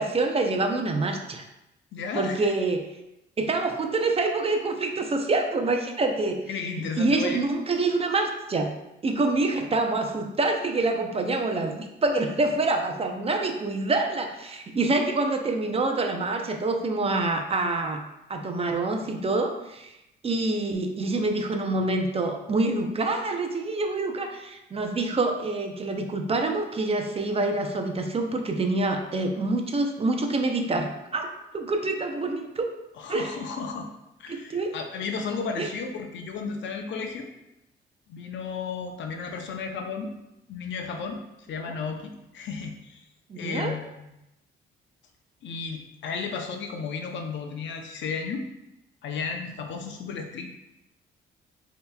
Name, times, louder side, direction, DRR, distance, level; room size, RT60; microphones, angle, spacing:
voice 1, 0.0-1.4 2.1-2.8 3.4-6.4 6.7-8.7 9.0-18.0 18.3-19.9 20.2-31.3 31.5-32.7 33.1-33.3 34.3-34.7 35.6-35.7 41.6-41.8 43.3-43.8, right 2 dB, 30° right, 4 dB, 0.5 m, -26 dB
voice 2, 1.9-2.5 6.5-7.4 33.0-33.9 34.2-37.3 38.1-40.1 40.5-41.2 41.5-43.0 43.3-44.2 45.4-48.5 49.0-50.5, left 5 dB, 70° left, 4 dB, 0.6 m, -33 dB
5.2 x 2.9 x 2.2 m, 0.90 s
cardioid pair, 90°, 20 cm